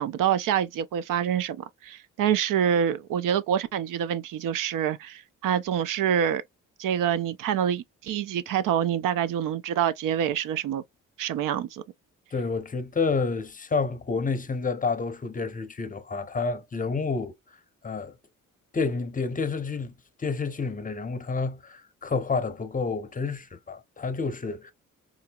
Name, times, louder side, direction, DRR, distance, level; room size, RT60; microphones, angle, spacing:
voice 1, 0.0-1.6 1.8-6.4 6.8-10.8 11.2-11.8, right 9 dB, 80° right, 0.5 m, -26 dB
voice 2, 12.3-17.3 17.8-18.1 18.7-19.9 20.2-24.7, left 4 dB, 25° left, 0.6 m, -29 dB
3.9 x 2.7 x 2.2 m
cardioid pair, 80°, 32 cm